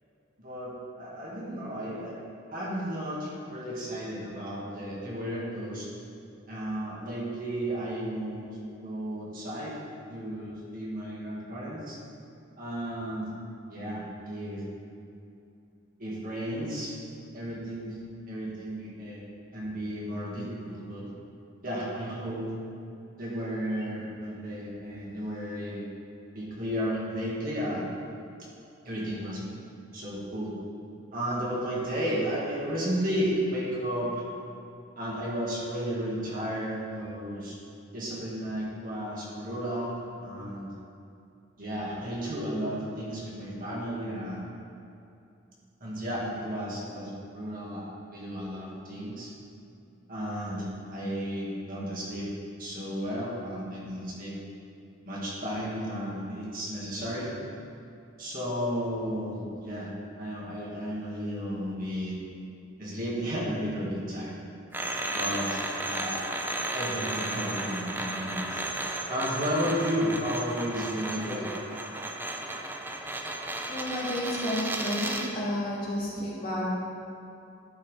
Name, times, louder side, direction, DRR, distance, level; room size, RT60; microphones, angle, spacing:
voice 1, 0.4-2.1 2.5-5.9 6.5-9.7 10.1-12.0 12.6-13.3 13.7-14.6 16.0-16.9 17.3-18.0 18.3-19.2 19.5-21.0 21.6-22.5 23.2-25.9 26.3-27.9 28.8-29.4 29.9-30.5 31.1-34.2 35.0-37.5 37.9-40.7 41.6-44.4 45.8-49.3 50.1-52.3 52.6-54.3 55.0-57.3 58.2-59.9 60.2-62.1 62.8-64.3 65.1-65.6 65.9-66.3 66.7-68.6 69.1-71.5, equal, 45° right, -6 dB, 1.9 m, -33 dB
sound 1, 64.7-75.4, right 2 dB, 10° right, 0.4 m, -34 dB
voice 2, 73.7-76.7, left 1 dB, 50° left, -7 dB, 2.0 m, -31 dB
11.0 x 5.9 x 3.4 m, 2.7 s
head